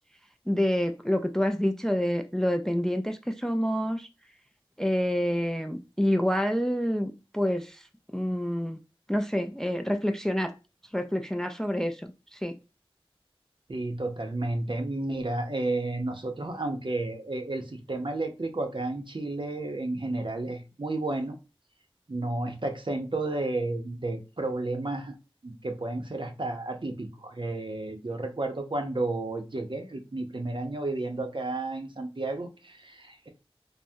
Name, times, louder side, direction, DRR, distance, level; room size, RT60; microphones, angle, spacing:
voice 1, 0.5-4.1 4.8-7.8 8.1-8.8 9.1-10.5 10.9-12.6, equal, 5° left, 7 dB, 0.3 m, -27 dB
voice 2, 13.7-21.4 22.1-25.1 25.4-33.3, right 2 dB, 55° right, 4 dB, 0.6 m, -32 dB
3.4 x 2.0 x 2.5 m, 0.29 s
wide cardioid pair, 40°, 10 cm